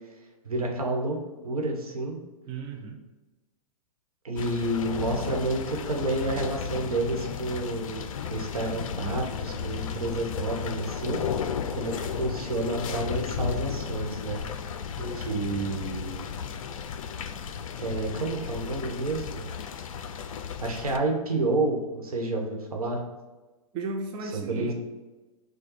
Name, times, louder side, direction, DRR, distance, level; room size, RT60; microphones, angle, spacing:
voice 1, 0.4-1.2 1.4-2.2 4.2-11.2 11.7-14.4 15.2-16.2 17.8-19.5 20.6-23.0 24.3-24.7, right 2 dB, 85° right, 1 dB, 1.1 m, -30 dB
voice 2, 2.5-3.0 15.0-15.5 23.7-24.7, right 3 dB, 25° right, 2 dB, 0.5 m, -35 dB
sound 1, 4.4-21.0, left 7 dB, 65° left, 0.4 m, -34 dB
4.9 x 2.2 x 4.7 m, 1.1 s
hypercardioid pair, 125°, 18 cm